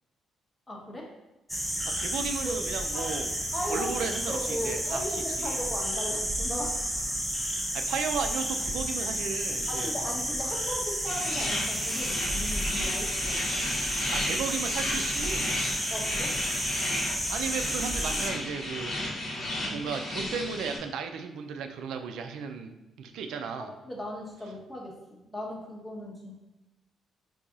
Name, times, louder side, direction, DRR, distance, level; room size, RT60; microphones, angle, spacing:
voice 1, 0.7-1.1 2.4-2.5 2.9-3.1 3.5-6.8 9.7-13.4 15.9-16.4 19.6-19.9 23.6-26.4, equal, 20° left, -2 dB, 0.9 m, -37 dB
sound 1, 1.5-18.3, equal, ahead, 0.5 m, -31 dB
voice 2, 2.0-3.3 3.7-5.1 5.4-5.6 7.7-10.0 14.1-15.5 17.3-19.3 19.7-23.7, right 6 dB, 80° right, 6 dB, 0.3 m, -35 dB
sound 2, 11.0-20.8, left 1 dB, 55° left, 0.8 m, -34 dB
3.9 x 2.7 x 2.4 m, 0.99 s
cardioid pair, 90°, 0 cm